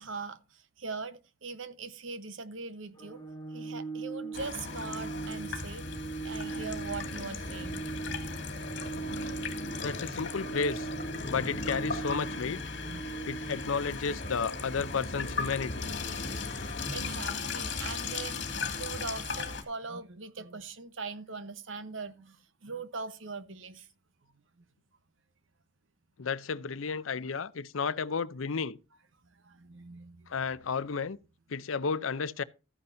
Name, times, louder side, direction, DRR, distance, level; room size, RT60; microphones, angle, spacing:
voice 1, 0.0-3.2 3.5-5.9 6.2-7.9 12.8-13.2 16.9-23.9 29.3-30.3, right 4 dB, 75° right, 1.0 m, -41 dB
Organ, 2.9-13.9, right 4 dB, 20° left, 1.7 m, -40 dB
Water tap faucet / Sink (filling or washing), 4.3-19.6, left 4 dB, 60° left, 2.3 m, -37 dB
voice 2, 9.8-10.9 11.3-12.6 13.3-15.9 26.2-28.8 30.3-31.2 31.5-32.4, left 5 dB, 85° left, 0.6 m, -32 dB
13.5 x 9.8 x 2.7 m
head